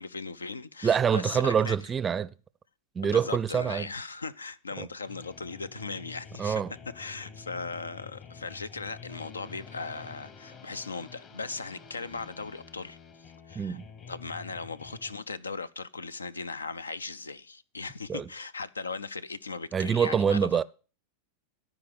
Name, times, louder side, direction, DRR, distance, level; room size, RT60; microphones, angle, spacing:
voice 1, 0.0-1.8 3.0-6.6 6.9-13.8 14.1-20.6, left 4 dB, 75° left, 0.5 m, -38 dB
voice 2, 0.8-2.3 3.0-3.9 4.8-4.9 6.4-6.7 13.6-13.8 18.1-18.2 19.7-20.6, right 7 dB, 20° right, 0.5 m, -25 dB
sound 1, 5.1-15.2, left 5 dB, 35° left, 1.4 m, -48 dB
13.5 x 5.0 x 7.7 m
figure-of-eight pair, 90°, 0 cm